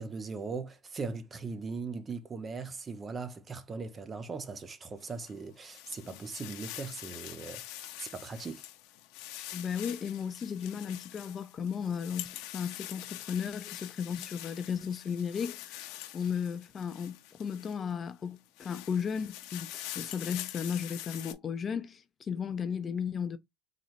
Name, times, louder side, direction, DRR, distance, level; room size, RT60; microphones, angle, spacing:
voice 1, 0.0-8.6, right 4 dB, 25° right, 0.6 m, -39 dB
sound 1, 5.1-17.9 18.4-21.3, left 14 dB, 65° left, 0.8 m, -45 dB
voice 2, 9.5-15.9 16.1-23.4, left 7 dB, 25° left, 0.5 m, -35 dB
3.9 x 3.2 x 3.0 m
supercardioid pair, 125°, 0 cm